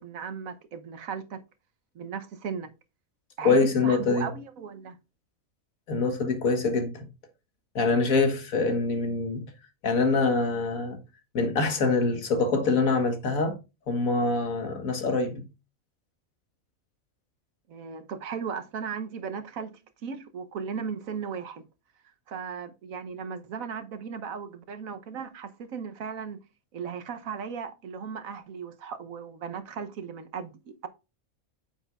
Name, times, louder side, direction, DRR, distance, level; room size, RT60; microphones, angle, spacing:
voice 1, 0.0-1.4 1.9-2.7 3.4-5.0 17.7-19.7 20.0-21.7 22.3-26.4 26.7-30.9, right 6 dB, 85° right, 1.4 m, -36 dB
voice 2, 3.4-4.3 5.9-7.1 7.8-9.5 9.8-11.0 11.3-13.6 13.9-15.4, left 3 dB, 90° left, 1.8 m, -24 dB
8.8 x 7.4 x 2.4 m
omnidirectional pair, 1.4 m